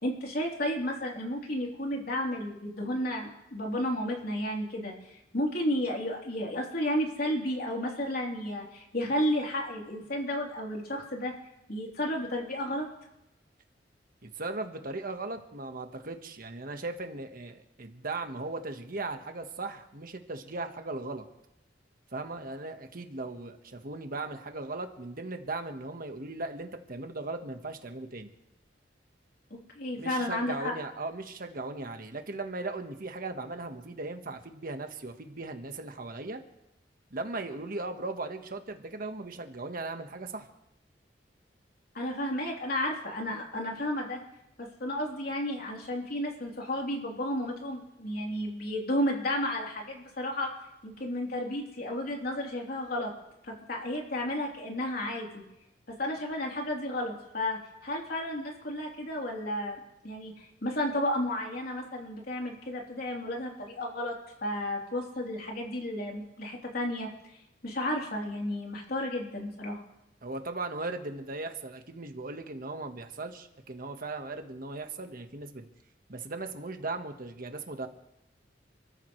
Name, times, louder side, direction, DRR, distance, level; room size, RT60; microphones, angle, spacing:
voice 1, 0.0-11.3 11.7-12.9 29.5-30.7 41.9-44.2 44.6-50.5 50.8-53.1 53.4-55.4 55.9-59.8 60.0-64.1 64.4-67.1 67.6-69.8, left 1 dB, 55° left, -1 dB, 3.5 m, -32 dB
voice 2, 14.2-21.2 22.1-28.3 30.0-36.4 37.1-40.5 70.2-75.7 76.1-77.9, right 2 dB, 50° right, 6 dB, 1.4 m, -38 dB
29.0 x 13.5 x 3.3 m, 0.89 s
head